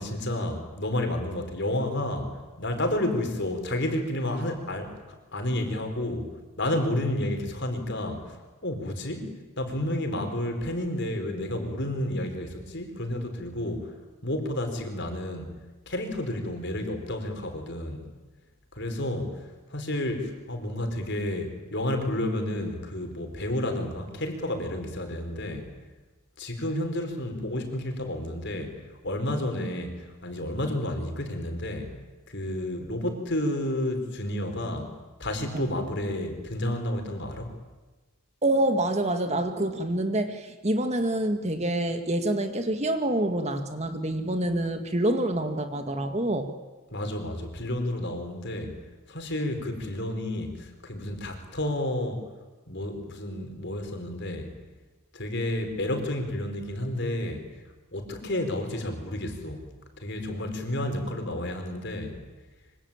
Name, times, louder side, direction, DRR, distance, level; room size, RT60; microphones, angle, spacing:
voice 1, 0.0-5.0 5.3-6.3 6.6-9.3 9.6-13.9 14.2-15.5 15.9-18.1 18.7-25.8 26.4-32.0 32.3-34.9 35.2-37.5 46.9-48.8 49.1-52.3 52.7-54.5 55.1-57.5 57.9-59.6 60.0-62.2, left 1 dB, 50° left, 5 dB, 4.9 m, -31 dB
voice 2, 38.4-46.5, right 1 dB, 30° right, 7 dB, 2.0 m, -27 dB
26.0 x 25.5 x 9.0 m, 1.2 s
head